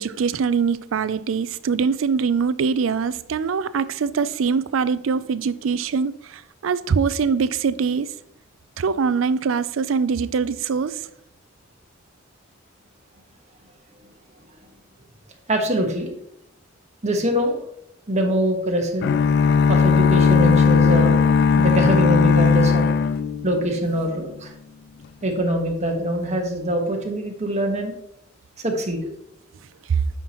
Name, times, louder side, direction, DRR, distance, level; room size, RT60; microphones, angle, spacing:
voice 1, 0.0-8.1 8.8-11.1 29.9-30.0, right 5 dB, 85° right, 0.4 m, -23 dB
voice 2, 15.5-16.1 17.0-17.6 18.1-19.1 19.7-21.2 21.6-22.9 23.4-24.5 25.2-27.9 28.6-29.1, right 1 dB, 35° right, 1.3 m, -23 dB
sound 1, 19.0-24.0, left 5 dB, 55° left, 0.3 m, -17 dB
9.2 x 5.8 x 3.0 m
head